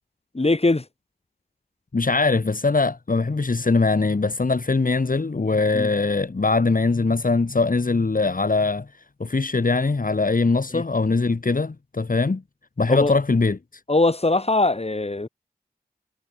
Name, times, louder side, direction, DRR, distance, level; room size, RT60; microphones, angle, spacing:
voice 1, 0.3-0.9 5.7-5.9 10.7-10.8 12.9-13.1 13.9-15.3, left 2 dB, 35° left, 3.5 m, -21 dB
voice 2, 1.9-8.9 9.2-12.4 12.8-13.6, left 3 dB, 55° left, 2.6 m, -21 dB
cardioid pair, 45°, 17 cm